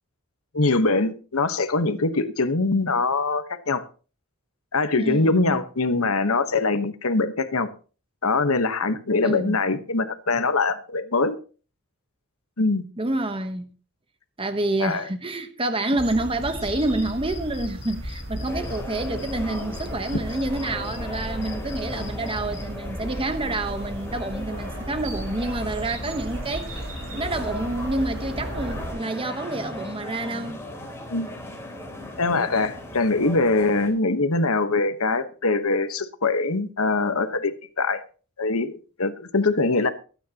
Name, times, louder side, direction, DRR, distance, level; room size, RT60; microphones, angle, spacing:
voice 1, 0.5-3.8 4.7-7.7 8.2-11.4 12.6-12.8 14.8-15.0 31.1-31.3 32.2-38.0 38.4-39.9, left 3 dB, 75° left, 1.2 m, -23 dB
voice 2, 5.0-5.6 9.2-9.6 13.0-13.7 14.4-30.6, right 2 dB, 25° right, 1.1 m, -28 dB
sound 1, 16.0-28.9, equal, 60° right, 4.1 m, -35 dB
sound 2, 16.6-22.6, left 6 dB, 50° left, 2.9 m, -47 dB
sound 3, 18.5-33.9, left 1 dB, 10° left, 3.2 m, -38 dB
23.5 x 9.3 x 2.9 m
head